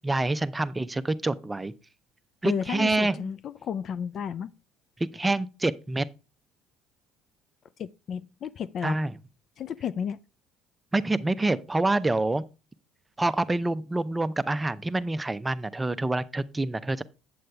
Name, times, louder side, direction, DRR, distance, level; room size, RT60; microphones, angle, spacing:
voice 1, 0.0-1.7 2.4-3.3 5.1-6.1 8.8-9.1 10.9-12.4 13.2-17.0, right 2 dB, 15° right, 0.6 m, -27 dB
voice 2, 2.4-4.5 7.8-9.0 9.6-10.2, left 8 dB, 50° left, 0.4 m, -33 dB
7.7 x 7.7 x 3.4 m
supercardioid pair, 75°, 0 cm